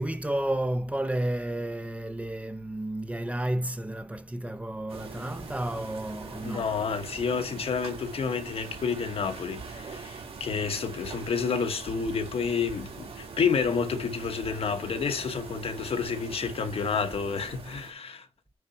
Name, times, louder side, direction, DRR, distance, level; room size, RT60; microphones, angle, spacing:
voice 1, 0.0-6.7, right 1 dB, 10° right, 0.6 m, -31 dB
sound 1, 4.9-17.9, right 4 dB, 60° right, 2.3 m, -42 dB
voice 2, 6.4-18.3, left 5 dB, 60° left, 1.1 m, -30 dB
9.6 x 3.9 x 4.3 m
wide cardioid pair, 175°, 11 cm